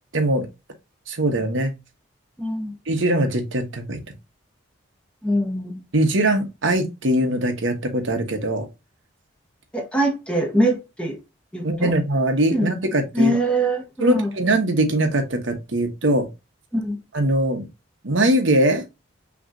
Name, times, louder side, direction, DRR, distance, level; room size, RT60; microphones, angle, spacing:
voice 1, 0.1-0.5 1.1-1.7 2.9-4.0 5.9-8.7 11.6-13.3 14.0-16.3 17.1-17.7 18.0-18.8, right 1 dB, 75° right, 1.2 m, -21 dB
voice 2, 2.4-2.7 5.2-5.8 9.7-11.2 11.5-11.9 12.5-12.7 13.1-14.3 16.7-17.0, right 1 dB, 5° left, 1.3 m, -23 dB
6.0 x 3.2 x 2.7 m
head